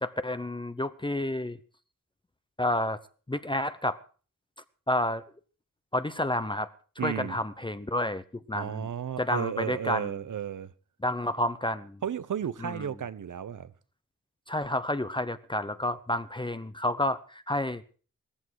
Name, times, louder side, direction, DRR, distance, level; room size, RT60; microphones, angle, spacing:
voice 1, 0.0-1.6 2.6-3.0 3.3-4.0 4.9-5.2 5.9-6.7 7.0-8.2 8.5-8.9 9.2-10.1 11.0-12.0 12.6-12.9 14.5-18.0, left 1 dB, 15° left, 0.8 m, -30 dB
voice 2, 7.0-7.4 8.5-10.7 12.0-13.7, right 8 dB, 70° right, 0.9 m, -33 dB
17.0 x 14.0 x 4.7 m
wide cardioid pair, 90°, 32 cm